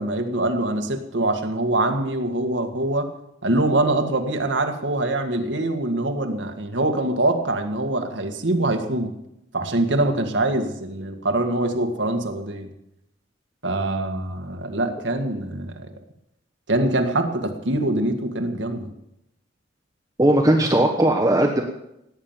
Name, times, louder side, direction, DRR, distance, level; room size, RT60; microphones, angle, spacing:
voice 1, 0.0-3.1 3.4-9.1 9.5-12.7 13.6-15.9 16.7-18.9, right 2 dB, 85° right, 6 dB, 1.9 m, -24 dB
voice 2, 20.2-21.6, right 1 dB, 20° right, 2 dB, 1.3 m, -18 dB
17.0 x 9.5 x 7.4 m, 0.82 s
head